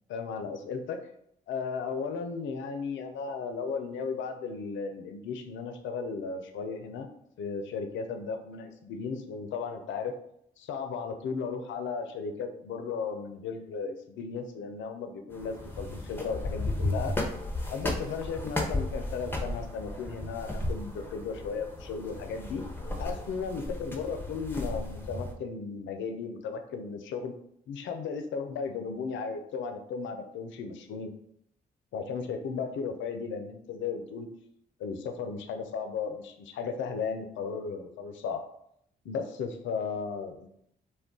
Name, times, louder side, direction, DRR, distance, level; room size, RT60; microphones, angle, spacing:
voice 1, 0.1-1.0 1.5-7.1 7.4-10.1 10.6-17.1 17.7-22.6 23.0-27.3 27.7-31.1 31.9-34.3 34.8-38.4 39.0-40.5, left 5 dB, 70° left, 6 dB, 0.5 m, -35 dB
sound 1, 15.3-25.3, left 1 dB, 10° left, 0.7 m, -34 dB
2.3 x 2.2 x 3.6 m, 0.72 s
hypercardioid pair, 40°, 20 cm